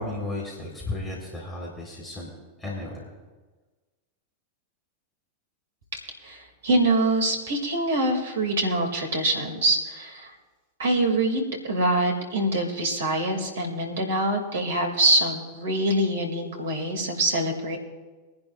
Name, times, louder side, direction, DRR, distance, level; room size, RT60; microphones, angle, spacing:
voice 1, 0.0-2.3 2.6-3.1, left 2 dB, 15° left, -4 dB, 4.0 m, -34 dB
voice 2, 6.2-10.3 10.8-17.8, right 1 dB, 65° right, 3 dB, 2.5 m, -24 dB
24.0 x 10.5 x 2.5 m, 1.3 s
figure-of-eight pair, 90°, 0 cm